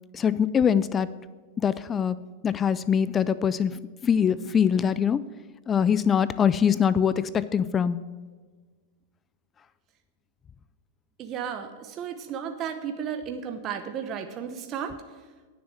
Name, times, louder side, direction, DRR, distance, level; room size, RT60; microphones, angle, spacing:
voice 1, 0.1-1.1 1.6-5.3 5.7-8.0, left 7 dB, 20° left, 17 dB, 0.3 m, -23 dB
voice 2, 11.2-15.0, right 8 dB, 35° right, 6 dB, 0.9 m, -34 dB
9.6 x 7.1 x 7.5 m, 1.4 s
hypercardioid pair, 135°, 0 cm